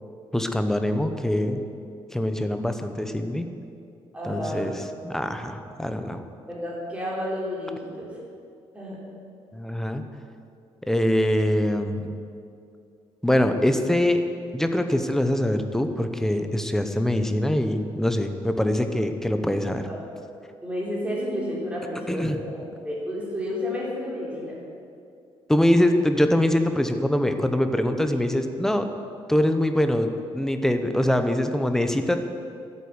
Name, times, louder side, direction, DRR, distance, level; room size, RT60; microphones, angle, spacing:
voice 1, 0.3-1.6 2.1-3.5 4.2-4.7 5.0-6.2 9.5-10.0 10.9-12.1 13.2-14.2 14.5-19.8 22.1-22.4 25.5-28.9 29.3-32.2, left 1 dB, 5° left, 7 dB, 0.9 m, -23 dB
voice 2, 4.1-4.7 6.5-8.1 8.7-9.0 19.9-20.0 20.6-24.6, left 1 dB, 10° right, -5 dB, 4.1 m, -31 dB
13.0 x 8.6 x 9.6 m, 2.5 s
cardioid pair, 145°, 11 cm